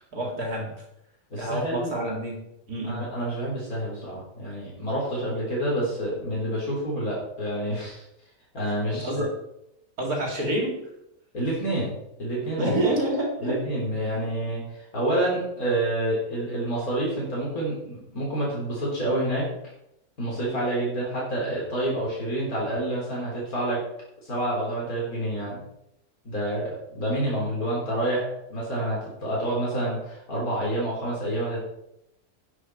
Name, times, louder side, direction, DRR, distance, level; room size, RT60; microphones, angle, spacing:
voice 1, 0.1-0.7 1.4-3.1 8.9-9.3 10.0-10.8 12.6-13.6, right 1 dB, 75° right, -1 dB, 4.0 m, -28 dB
voice 2, 1.3-1.9 2.8-8.0 8.5-9.3 11.3-11.9 12.2-12.8 13.4-19.5 20.2-23.8 24.2-25.6 26.2-31.6, right 1 dB, 70° left, -5 dB, 4.5 m, -28 dB
11.0 x 9.8 x 4.8 m, 0.81 s
omnidirectional pair, 1.6 m